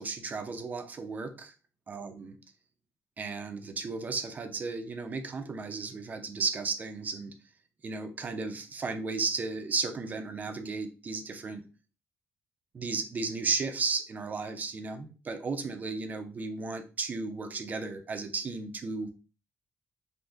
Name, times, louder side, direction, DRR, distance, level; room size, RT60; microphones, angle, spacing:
voice 1, 0.0-1.5 1.9-2.4 3.2-7.3 7.8-11.6 12.7-19.1, right 4 dB, 30° right, 6 dB, 0.5 m, -34 dB
3.9 x 2.6 x 2.4 m, 0.32 s
cardioid pair, 165°, 6 cm